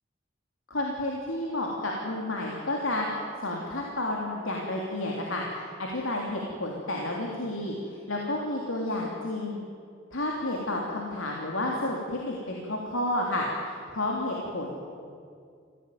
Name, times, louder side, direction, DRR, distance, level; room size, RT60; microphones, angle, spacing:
voice 1, 0.7-9.6 10.1-14.7, left 1 dB, 85° left, -1 dB, 3.2 m, -31 dB
25.0 x 17.0 x 9.4 m, 2.2 s
head